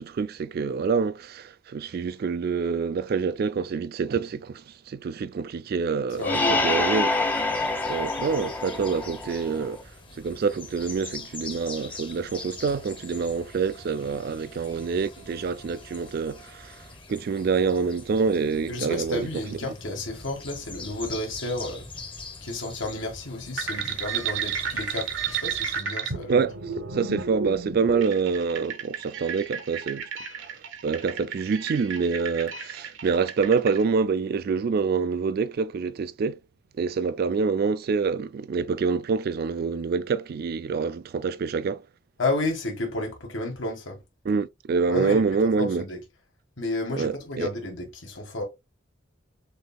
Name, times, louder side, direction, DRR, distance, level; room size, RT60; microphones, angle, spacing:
voice 1, 0.0-6.2 6.6-7.1 7.9-9.8 10.2-16.8 17.1-19.3 26.3-26.6 26.9-30.1 30.8-36.4 36.8-41.8 44.3-45.8 47.0-47.5, right 5 dB, 50° right, 0.3 m, -26 dB
sound 1, 6.1-25.8, left 3 dB, 25° left, 0.9 m, -44 dB
voice 2, 6.2-6.9 7.5-7.6 18.7-21.9 22.4-26.4 42.2-44.0 44.9-46.0 46.6-48.4, left 2 dB, 75° left, 1.6 m, -31 dB
sound 2, 6.2-9.8, left 2 dB, 10° left, 0.5 m, -27 dB
sound 3, 23.6-33.8, right 6 dB, 70° right, 0.9 m, -32 dB
6.4 x 2.7 x 2.2 m
head